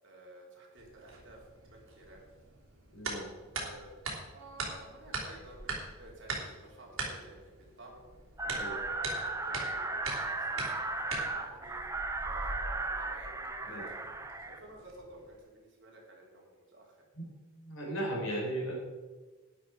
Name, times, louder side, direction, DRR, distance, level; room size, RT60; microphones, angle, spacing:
voice 1, 0.0-2.3 3.5-8.1 8.5-11.8 12.2-14.1 14.5-17.1, right 1 dB, 60° right, -2 dB, 3.6 m, -53 dB
sound 1, 0.8-15.4, right 3 dB, 75° right, 3.1 m, -43 dB
voice 2, 2.9-3.3 8.4-8.7 13.7-13.9 17.1-17.3 17.5-18.8, right 1 dB, 70° left, -2 dB, 4.7 m, -36 dB
sound 2, 8.4-14.6, right 2 dB, 15° right, 0.7 m, -36 dB
12.0 x 10.0 x 4.7 m, 1.3 s
head